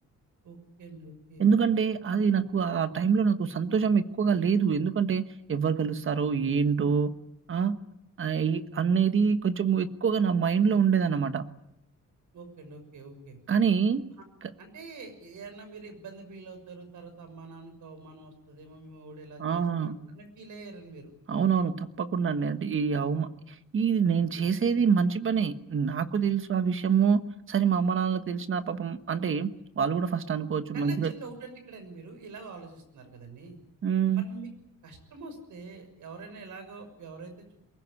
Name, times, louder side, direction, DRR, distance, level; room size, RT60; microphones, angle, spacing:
voice 1, 0.4-1.5 12.3-13.4 14.2-14.3 14.6-21.1 30.7-33.6 34.1-34.5 34.8-37.6, right 3 dB, 70° right, 7 dB, 6.3 m, -45 dB
voice 2, 1.4-7.2 7.5-7.8 8.2-11.5 13.5-14.1 19.4-20.0 21.3-31.1 33.8-34.2, right 6 dB, 40° right, 11 dB, 1.3 m, -26 dB
23.0 x 20.0 x 10.0 m, 0.78 s
wide cardioid pair, 165°, 31 cm